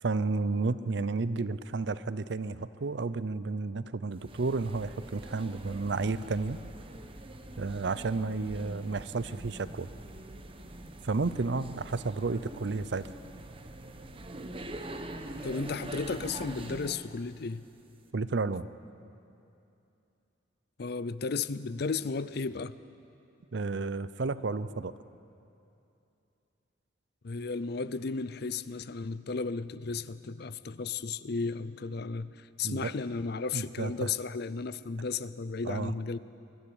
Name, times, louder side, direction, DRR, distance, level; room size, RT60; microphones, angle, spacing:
voice 1, 0.0-6.6 7.6-9.9 11.0-13.0 18.1-18.7 23.5-24.9 32.6-32.9 33.5-34.1 35.6-35.9, right 3 dB, 65° right, 15 dB, 0.6 m, -32 dB
sound 1, 4.1-17.1, right 1 dB, 30° right, 1.1 m, -44 dB
voice 2, 15.4-17.6 20.8-22.7 27.2-36.2, left 4 dB, 55° left, 16 dB, 0.6 m, -34 dB
21.5 x 13.0 x 10.0 m, 2.7 s
head